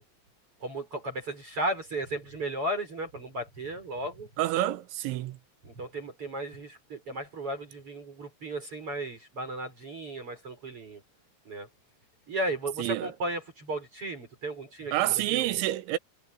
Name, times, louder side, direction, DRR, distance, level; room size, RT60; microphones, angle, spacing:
voice 1, 0.6-4.3 5.6-11.0 11.5-11.7 12.3-15.5, right 1 dB, 30° right, 5.5 m, -35 dB
voice 2, 4.4-5.4 12.8-13.1 14.9-16.0, right 15 dB, 80° right, 3.1 m, -28 dB
omnidirectional pair, 5.8 m